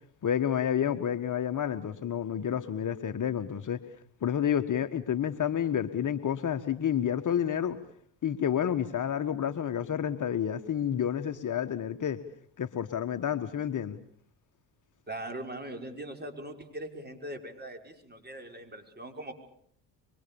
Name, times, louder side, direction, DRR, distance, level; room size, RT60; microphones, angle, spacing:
voice 1, 0.2-3.8 4.2-7.8 8.2-12.2 12.6-14.0, left 9 dB, 40° left, 8 dB, 1.5 m, -29 dB
voice 2, 15.1-19.3, right 1 dB, 20° right, 5 dB, 5.7 m, -41 dB
25.0 x 24.0 x 7.1 m, 0.65 s
hypercardioid pair, 65°, 48 cm